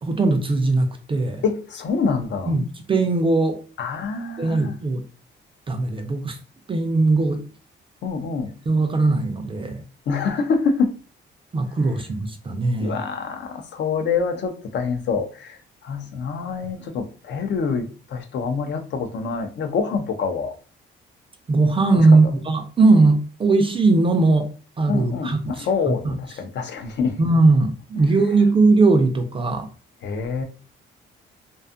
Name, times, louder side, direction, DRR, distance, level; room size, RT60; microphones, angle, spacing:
voice 1, 0.0-1.4 2.5-3.6 4.4-5.0 5.7-6.4 6.7-7.4 8.7-9.8 11.5-13.0 21.5-24.5 24.8-26.1 27.2-29.7, right 3 dB, 25° right, 0.4 m, -19 dB
voice 2, 1.4-2.5 3.8-4.8 8.0-8.5 10.1-10.9 12.8-20.5 24.9-27.2 30.0-30.4, left 5 dB, 65° left, 0.6 m, -26 dB
2.5 x 2.3 x 2.4 m
cardioid pair, 90°, 20 cm